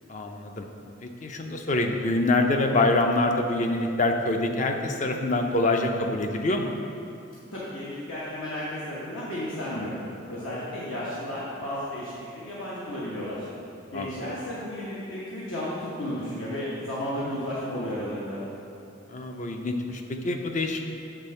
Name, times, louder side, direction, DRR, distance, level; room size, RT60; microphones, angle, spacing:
voice 1, 0.1-0.7 1.0-6.7 13.9-14.2 17.2-17.4 19.1-21.0, left 2 dB, 35° left, 4 dB, 0.5 m, -25 dB
voice 2, 7.5-9.9 10.3-13.5 13.9-18.4, left 1 dB, 70° left, -8 dB, 1.2 m, -33 dB
8.1 x 3.7 x 5.4 m, 2.7 s
head